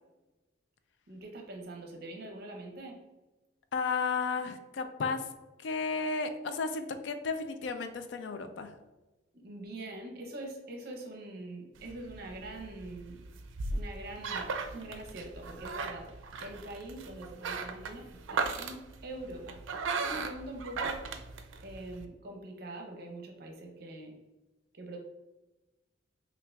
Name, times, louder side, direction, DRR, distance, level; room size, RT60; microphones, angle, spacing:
voice 1, 1.1-3.0 9.3-13.2 13.7-16.1 16.4-19.6 20.0-21.0 21.6-24.2 24.8-25.0, right 2 dB, 55° right, 2 dB, 0.7 m, -44 dB
voice 2, 3.7-5.3 5.6-8.7, left 4 dB, 65° left, 8 dB, 0.4 m, -33 dB
sound 1, 11.8-22.0, right 4 dB, 85° right, 0.4 m, -37 dB
5.8 x 2.4 x 2.3 m, 1.1 s
head